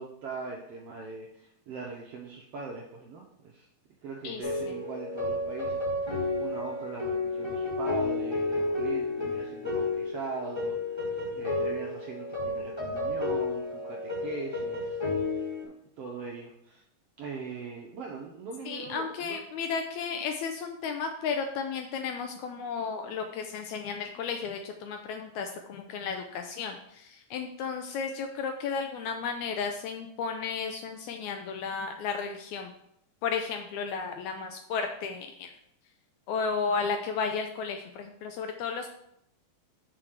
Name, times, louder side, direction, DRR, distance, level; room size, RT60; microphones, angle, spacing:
voice 1, 0.0-3.7 4.0-15.0 15.3-16.8 17.2-19.4, right 4 dB, 75° right, -1 dB, 1.4 m, -41 dB
voice 2, 4.2-4.7 18.7-32.7 33.2-35.5 36.3-38.9, left 5 dB, 80° left, 5 dB, 1.7 m, -33 dB
sound 1, 4.4-15.6, left 2 dB, 10° left, 1.8 m, -31 dB
5.9 x 4.6 x 6.4 m, 0.77 s
omnidirectional pair, 3.8 m